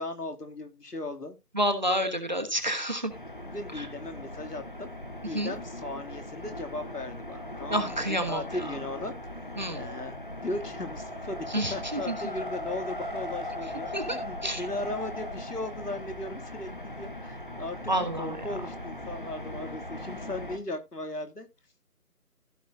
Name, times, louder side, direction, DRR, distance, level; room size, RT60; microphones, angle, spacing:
voice 1, 0.0-1.4 3.4-4.9 5.2-9.1 9.7-10.1 10.4-21.5, left 2 dB, 85° left, 2.6 m, -37 dB
voice 2, 1.5-3.1 3.8-3.9 5.3-5.5 7.7-8.4 9.6-9.8 11.5-12.1 13.9-14.6 17.9-18.4, right 1 dB, 30° right, 1.2 m, -29 dB
sound 1, 3.1-20.6, left 1 dB, 35° left, 1.2 m, -39 dB
15.5 x 6.3 x 2.6 m
figure-of-eight pair, 175°, 46 cm